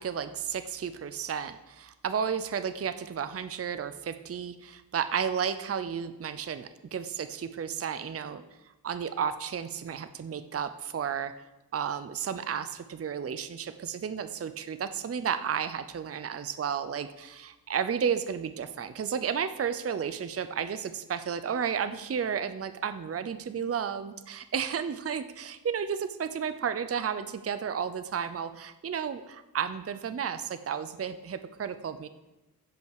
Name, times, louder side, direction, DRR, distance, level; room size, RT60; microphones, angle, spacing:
voice 1, 0.0-8.4 8.8-11.3 11.7-32.1, right 7 dB, 40° right, 11 dB, 0.5 m, -32 dB
15.5 x 5.4 x 4.8 m, 1.0 s
wide cardioid pair, 100°, 35 cm